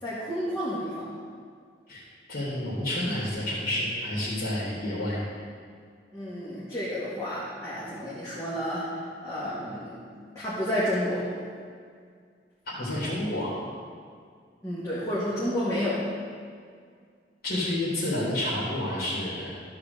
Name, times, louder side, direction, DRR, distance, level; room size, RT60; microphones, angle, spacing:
voice 1, 0.0-1.1 6.1-9.0 9.2-10.0 10.4-11.3 14.6-16.0, equal, 20° left, -10 dB, 2.1 m, -30 dB
voice 2, 2.3-5.2 12.7-13.5 17.4-19.6, left 1 dB, 60° left, -8 dB, 3.1 m, -29 dB
13.5 x 4.8 x 6.7 m, 2.1 s
head